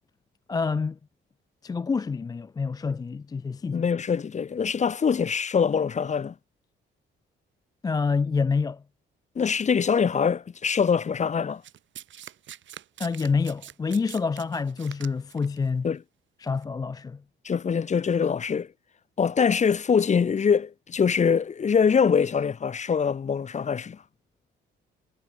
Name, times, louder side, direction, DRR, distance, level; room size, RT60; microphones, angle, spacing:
voice 1, 0.5-1.0 1.6-3.8 7.8-8.8 13.0-15.9 16.4-17.2, left 5 dB, 20° left, 0.3 m, -27 dB
voice 2, 3.7-6.3 9.3-11.6 15.8-16.0 17.4-18.7 19.2-24.0, left 6 dB, 35° left, 1.0 m, -23 dB
Domestic sounds home sounds, 11.6-15.6 16.5-16.6, right 11 dB, 70° right, 4.3 m, -44 dB
cardioid pair, 90°, 20 cm